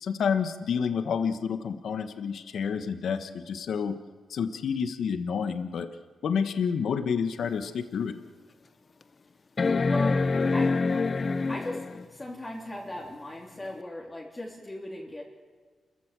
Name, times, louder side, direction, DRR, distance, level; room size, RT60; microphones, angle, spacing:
voice 1, 0.0-4.0 4.3-5.9 6.2-8.1, left 6 dB, 75° left, 8 dB, 1.3 m, -29 dB
sound 1, 7.4-7.5 8.1-8.2 9.6-12.1 13.8-13.9, left 4 dB, 40° left, 0.7 m, -25 dB
voice 2, 9.9-10.2 10.5-10.7 11.5-15.2, left 1 dB, 20° left, -3 dB, 3.4 m, -37 dB
29.0 x 15.0 x 7.6 m, 1.5 s
cardioid pair, 95°, 0 cm